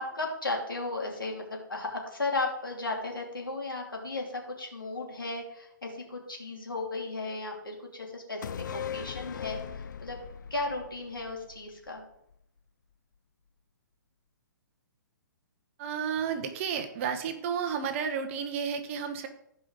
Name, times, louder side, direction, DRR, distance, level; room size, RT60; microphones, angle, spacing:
voice 1, 0.0-10.2 10.5-12.0, left 2 dB, 85° left, 0 dB, 2.8 m, -35 dB
sound 1, 8.4-12.0 12.3-12.4, left 8 dB, 60° left, 0.4 m, -39 dB
voice 2, 15.8-19.3, right 7 dB, 40° right, 7 dB, 1.2 m, -32 dB
15.5 x 5.2 x 3.8 m, 0.76 s
figure-of-eight pair, 125°, 11 cm